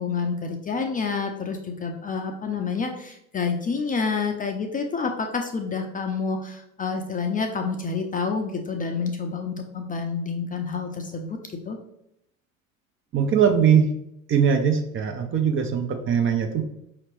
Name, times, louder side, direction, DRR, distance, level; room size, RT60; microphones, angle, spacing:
voice 1, 0.0-11.4 11.6-11.8, left 5 dB, 20° left, 3 dB, 0.5 m, -28 dB
voice 2, 13.1-13.9 14.3-16.6, right 7 dB, 30° right, 5 dB, 0.5 m, -21 dB
5.0 x 2.9 x 3.0 m, 0.78 s
hypercardioid pair, 70°, 41 cm